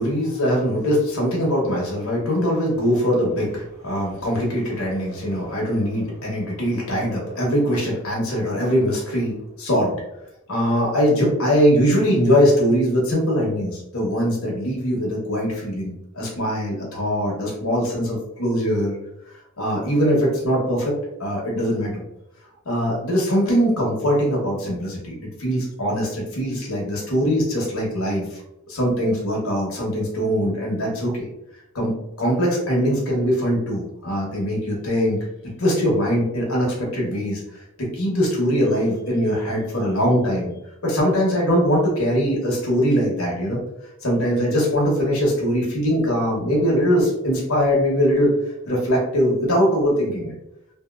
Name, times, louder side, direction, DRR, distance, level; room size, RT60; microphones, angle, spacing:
voice 1, 0.0-10.0 10.5-19.0 19.6-20.9 21.2-22.0 22.6-28.4 28.7-31.3 31.7-35.2 35.6-40.5 40.8-43.6 44.0-48.3 48.7-50.3, equal, 80° left, -3 dB, 1.0 m, -22 dB
2.8 x 2.7 x 2.4 m, 0.84 s
head